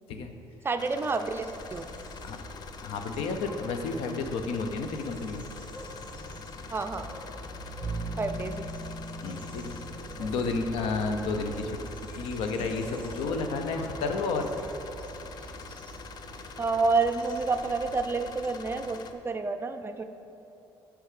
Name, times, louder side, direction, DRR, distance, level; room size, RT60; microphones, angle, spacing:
voice 1, 0.6-1.9 6.7-7.1 8.2-8.7 16.6-20.0, right 4 dB, 25° right, 7 dB, 0.4 m, -29 dB
sound 1, 0.8-19.1, left 5 dB, 45° left, 0.5 m, -45 dB
sound 2, 1.1-18.4, equal, 15° left, 1.6 m, -45 dB
voice 2, 2.8-5.5 9.2-15.1, left 4 dB, 80° left, 6 dB, 0.7 m, -32 dB
Piano, 7.8-18.6, right 3 dB, 5° right, 0.8 m, -43 dB
6.5 x 4.8 x 6.5 m, 2.9 s
cardioid pair, 110°, 10 cm